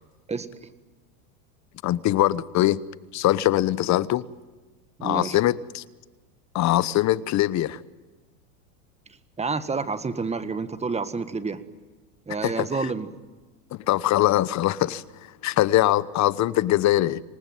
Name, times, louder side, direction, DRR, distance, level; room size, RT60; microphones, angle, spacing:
voice 1, 1.8-2.8 3.1-4.2 5.0-5.8 6.5-7.8 12.4-12.7 13.9-15.0 15.4-17.2, left 14 dB, 40° left, 1.1 m, -22 dB
voice 2, 5.0-5.4 9.4-11.6 12.3-13.1, right 4 dB, 15° right, 1.7 m, -29 dB
26.5 x 19.0 x 9.3 m
supercardioid pair, 115°, 45 cm